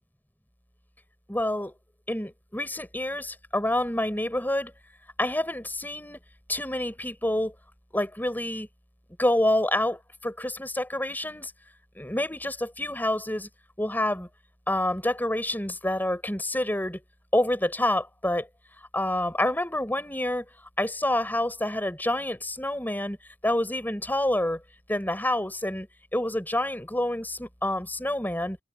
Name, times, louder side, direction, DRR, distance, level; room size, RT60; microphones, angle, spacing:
voice 1, 1.3-1.7 2.1-4.7 5.2-6.2 6.5-7.5 7.9-8.7 9.2-11.5 11.9-13.5 13.8-14.3 14.7-17.0 17.3-18.5 18.9-20.4 20.8-23.2 23.4-24.6 24.9-28.6, left 1 dB, 10° left, 6.3 m, -27 dB
head